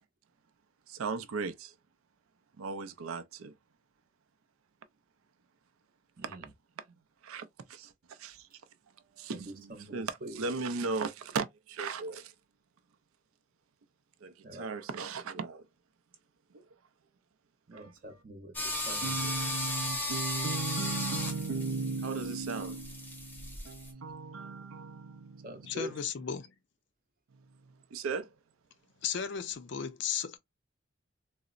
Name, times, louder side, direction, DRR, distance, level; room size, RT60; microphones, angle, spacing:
voice 1, 0.9-1.7 2.6-3.5 6.2-6.4 7.2-8.5 9.2-12.3 14.2-15.7 16.5-16.6 17.7-17.9 19.0-25.8 27.9-28.3, right 4 dB, 80° right, 0.4 m, -37 dB
voice 2, 6.2-6.5 9.3-10.4 14.4-14.7 17.7-19.3 25.4-25.9, right 1 dB, 40° right, 0.6 m, -45 dB
sound 1, 18.5-23.9, left 1 dB, 10° left, 0.7 m, -36 dB
voice 3, 25.6-26.5 29.0-30.4, left 8 dB, 55° left, 0.4 m, -35 dB
3.9 x 2.0 x 2.3 m
head